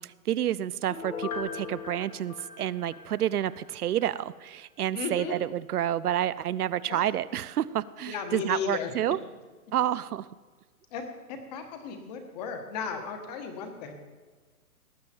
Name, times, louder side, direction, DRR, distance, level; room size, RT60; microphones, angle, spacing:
voice 1, 0.0-9.2 9.7-10.3, right 11 dB, 80° right, 17 dB, 0.6 m, -29 dB
Piano, 0.9-3.6 4.0-4.1, left 5 dB, 70° left, 2.3 m, -39 dB
voice 2, 4.9-5.3 6.9-7.0 8.1-8.9 10.9-11.0 11.3-13.9, left 6 dB, 25° left, 6 dB, 1.5 m, -35 dB
18.5 x 8.6 x 4.5 m, 1.4 s
hypercardioid pair, 165°, 45 cm